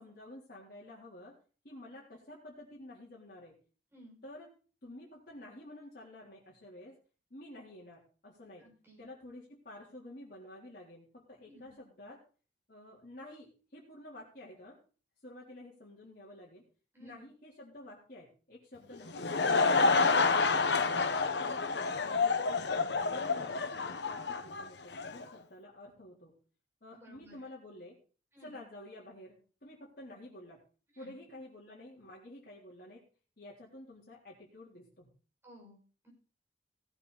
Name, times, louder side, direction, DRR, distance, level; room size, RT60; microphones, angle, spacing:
voice 1, 0.0-1.4 1.6-3.6 4.2-4.5 4.8-6.9 7.3-8.7 9.0-12.2 12.7-14.8 15.2-16.6 17.0-19.3 19.9-22.8 23.1-26.4 26.8-28.0 28.4-30.6 31.0-33.0 33.4-35.1, left 1 dB, 50° left, -6 dB, 3.7 m, -50 dB
voice 2, 8.6-9.0 11.5-11.7 16.9-17.2 23.2-23.5 26.9-27.4 28.3-28.6 30.9-31.2 35.4-36.1, equal, 15° right, -3 dB, 6.0 m, -56 dB
Laughter / Crowd, 18.9-25.2, left 4 dB, 70° left, 1.0 m, -29 dB
17.5 x 8.9 x 4.2 m, 0.38 s
head